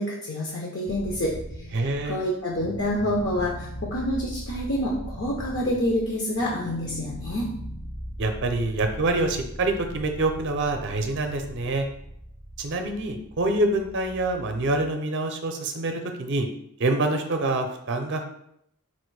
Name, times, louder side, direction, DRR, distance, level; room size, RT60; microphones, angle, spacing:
voice 1, 0.0-1.3 2.0-7.5, left 1 dB, 55° left, -2 dB, 0.6 m, -27 dB
sound 1, 0.9-14.9, equal, 5° left, 0.5 m, -39 dB
voice 2, 1.7-2.2 8.2-11.9 12.6-16.5 16.8-18.2, right 2 dB, 55° right, 5 dB, 0.5 m, -26 dB
4.2 x 2.5 x 4.6 m, 0.74 s
head